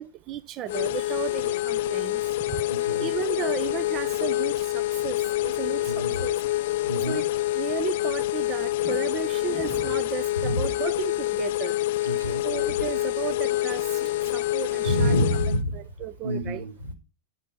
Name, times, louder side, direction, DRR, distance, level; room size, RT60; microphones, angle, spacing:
voice 1, 0.0-2.2 2.5-2.6 3.0-6.4 7.1-7.2 7.5-11.7 12.4-15.1 15.7-16.6, right 11 dB, 35° right, 0.5 m, -34 dB
sound 1, 0.7-15.6, left 16 dB, 55° left, 0.4 m, -27 dB
voice 2, 2.7-3.1 5.9-6.2 6.9-7.2 10.4-10.7 12.0-12.4 14.8-15.8 16.2-16.9, equal, 80° right, 2.5 m, -27 dB
12.5 x 5.9 x 5.7 m
figure-of-eight pair, 90°, 0 cm